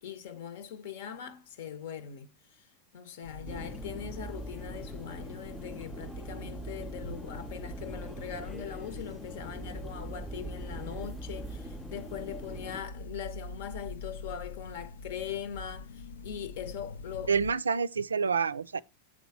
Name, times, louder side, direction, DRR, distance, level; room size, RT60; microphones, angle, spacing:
voice 1, 0.0-2.3 2.9-17.3, left 8 dB, 65° left, 1.0 m, -41 dB
sound 1, 3.2-17.5, left 2 dB, 80° left, 0.5 m, -45 dB
sound 2, 3.5-12.8, right 2 dB, ahead, 0.5 m, -42 dB
voice 2, 17.3-18.8, right 5 dB, 85° right, 0.3 m, -28 dB
7.5 x 4.0 x 4.8 m
hypercardioid pair, 95°, 0 cm